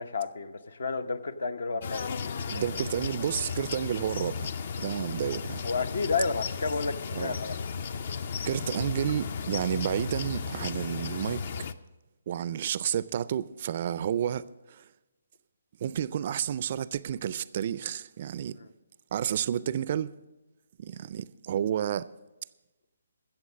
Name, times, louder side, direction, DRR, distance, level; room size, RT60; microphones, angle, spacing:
voice 1, 0.0-2.6 5.6-7.5, left 4 dB, 70° left, 0.9 m, -31 dB
sound 1, 1.8-11.7, left 6 dB, 50° left, 0.5 m, -35 dB
voice 2, 2.5-4.5 4.8-5.6 7.1-7.4 8.5-11.5 12.3-14.8 15.8-18.6 19.1-20.1 20.8-22.1, right 9 dB, 45° right, 0.3 m, -31 dB
14.5 x 7.4 x 6.2 m
figure-of-eight pair, 145°, 0 cm